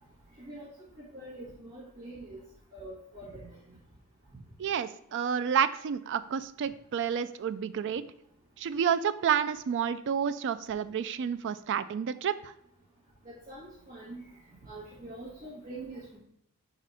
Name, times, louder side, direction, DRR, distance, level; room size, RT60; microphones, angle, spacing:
voice 1, 1.0-2.4 2.7-3.5 13.2-14.2 14.6-16.2, right 2 dB, 35° right, -7 dB, 1.6 m, -44 dB
voice 2, 4.6-8.0 8.6-12.5, right 8 dB, 55° right, 14 dB, 0.3 m, -30 dB
5.0 x 4.2 x 4.7 m, 0.74 s
head